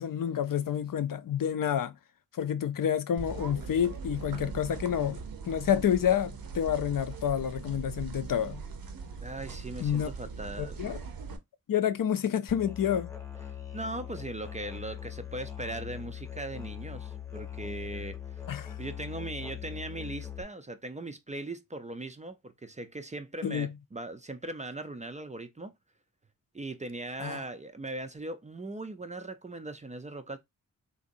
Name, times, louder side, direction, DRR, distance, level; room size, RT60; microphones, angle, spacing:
voice 1, 0.0-1.9 2.4-8.6 9.8-10.1 10.6-11.0 11.7-13.1 18.5-18.7 23.4-23.7 27.2-27.4, left 9 dB, 70° left, 0.5 m, -29 dB
sound 1, 3.2-11.4, right 5 dB, 90° right, 0.7 m, -40 dB
voice 2, 9.2-10.8 13.5-18.5 18.8-25.7 26.5-30.4, right 2 dB, 20° right, 0.3 m, -39 dB
Musical instrument, 12.5-20.4, left 10 dB, 10° left, 0.8 m, -41 dB
3.7 x 2.6 x 2.5 m
wide cardioid pair, 125°, 34 cm